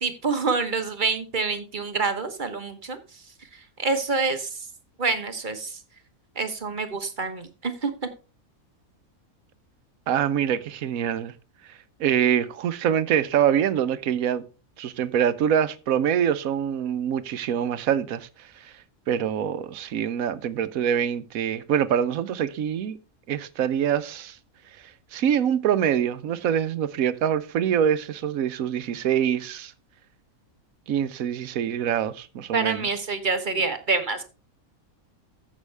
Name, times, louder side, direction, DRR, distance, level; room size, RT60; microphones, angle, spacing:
voice 1, 0.0-3.0 3.8-4.6 5.0-5.8 6.4-7.9 32.5-34.2, right 4 dB, 35° right, 1.2 m, -27 dB
voice 2, 10.1-11.3 12.0-14.4 14.8-18.3 18.6-18.7 19.1-23.0 23.3-24.4 25.1-29.7 30.9-32.9, right 9 dB, 75° right, 1.2 m, -24 dB
14.5 x 6.4 x 3.3 m
omnidirectional pair, 1.5 m